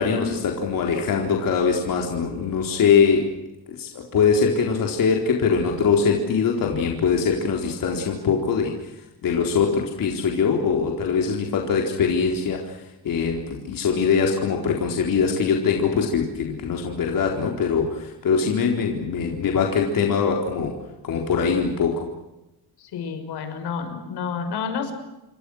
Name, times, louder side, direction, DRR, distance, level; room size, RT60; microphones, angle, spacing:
voice 1, 0.0-3.3 3.7-8.7 9.2-12.8 13.0-20.7 21.0-22.0, left 6 dB, 55° left, 1 dB, 4.1 m, -22 dB
voice 2, 22.8-24.9, left 6 dB, 80° left, 7 dB, 6.0 m, -30 dB
29.0 x 25.5 x 6.4 m, 0.95 s
cardioid pair, 165°, 39 cm